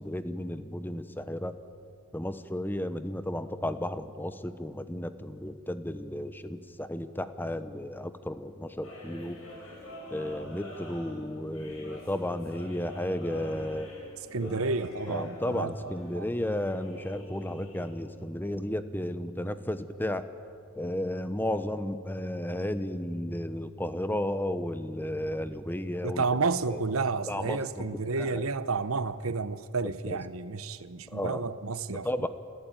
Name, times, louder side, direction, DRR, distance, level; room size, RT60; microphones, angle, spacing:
voice 1, 0.0-1.5 2.1-9.4 10.1-13.9 14.4-14.5 15.1-20.2 20.8-26.2 27.3-27.8 28.2-28.4 30.1-30.2 31.1-31.4 32.0-32.3, left 1 dB, 10° left, 0.9 m, -33 dB
sound 1, 8.8-17.9, left 1 dB, 75° left, 7.5 m, -46 dB
voice 2, 14.3-16.3 26.0-32.3, right 4 dB, 75° right, 0.9 m, -31 dB
28.0 x 14.5 x 9.1 m
head